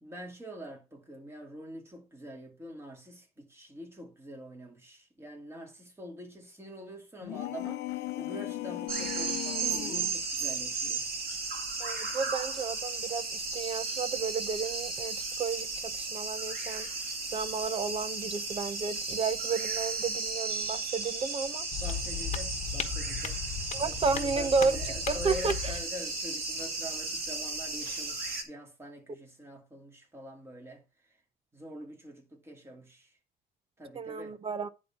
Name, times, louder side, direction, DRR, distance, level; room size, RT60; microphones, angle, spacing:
voice 1, 0.0-11.0 21.8-23.4 23.8-30.8 31.5-33.1 33.8-34.3, equal, 15° right, 2.4 m, -45 dB
sound 1, 7.2-10.2, left 16 dB, 75° left, 0.6 m, -37 dB
sound 2, 8.9-28.4, right 4 dB, 60° right, 2.0 m, -35 dB
voice 2, 11.8-16.9 17.3-21.7 23.7-25.8 33.9-34.7, right 5 dB, 35° right, 0.6 m, -32 dB
sound 3, 21.7-25.8, left 7 dB, 40° left, 1.2 m, -36 dB
10.0 x 3.7 x 5.8 m
cardioid pair, 110°, 17 cm